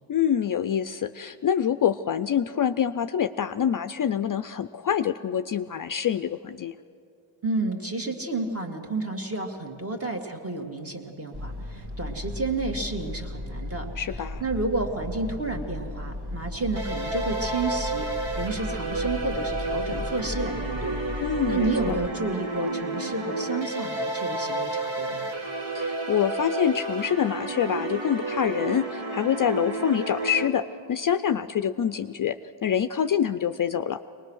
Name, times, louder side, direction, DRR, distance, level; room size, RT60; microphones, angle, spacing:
voice 1, 0.1-6.8 14.0-14.4 21.2-22.0 25.7-34.0, left 8 dB, 45° left, 11 dB, 0.5 m, -26 dB
voice 2, 7.4-13.9 14.4-18.1 18.4-21.0 21.5-25.3, right 3 dB, 30° right, 3 dB, 2.1 m, -31 dB
sound 1, 11.3-22.1, left 1 dB, 50° right, 1.9 m, -36 dB
sound 2, 16.8-30.5, right 2 dB, 70° right, 2.2 m, -31 dB
23.0 x 20.0 x 6.4 m, 2.5 s
cardioid pair, 90°, 49 cm